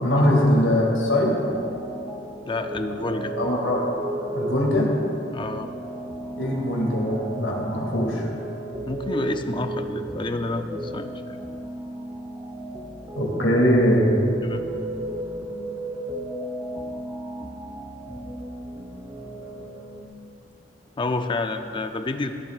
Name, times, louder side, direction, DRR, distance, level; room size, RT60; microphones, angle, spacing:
voice 1, 0.0-1.3 3.4-3.8 4.3-4.9 6.3-8.3 13.2-14.1, equal, 80° left, -2 dB, 2.4 m, -21 dB
sound 1, 1.5-20.0, right 1 dB, 20° right, 0.8 m, -34 dB
voice 2, 2.5-3.3 5.3-5.7 8.9-11.4 14.4-14.6 21.0-22.3, left 2 dB, 25° left, 7 dB, 0.5 m, -29 dB
16.0 x 11.5 x 2.5 m, 2.8 s
head